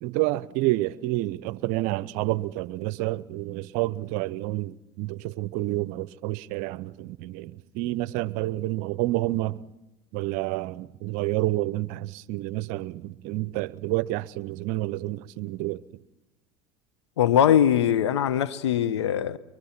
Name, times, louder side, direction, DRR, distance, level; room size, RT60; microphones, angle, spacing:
voice 1, 0.0-9.6 10.1-15.8, right 17 dB, 65° right, 0.7 m, -29 dB
voice 2, 17.2-19.4, left 10 dB, 90° left, 0.9 m, -21 dB
24.0 x 23.0 x 5.8 m
hypercardioid pair, 80°, 14 cm